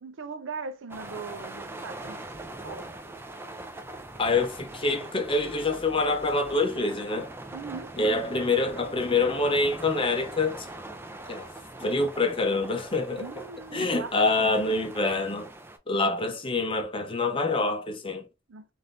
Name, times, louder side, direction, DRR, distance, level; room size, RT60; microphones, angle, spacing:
voice 1, 0.0-2.2 2.6-2.9 7.5-7.9 13.2-14.7 18.5-18.7, right 4 dB, 80° right, 0.5 m, -39 dB
sound 1, 0.9-15.8, right 2 dB, 10° right, 0.4 m, -42 dB
voice 2, 4.2-7.3 8.0-10.7 11.3-11.5 11.8-13.3 13.7-15.5 15.9-18.2, left 3 dB, 25° left, 0.6 m, -26 dB
3.5 x 2.6 x 2.5 m
head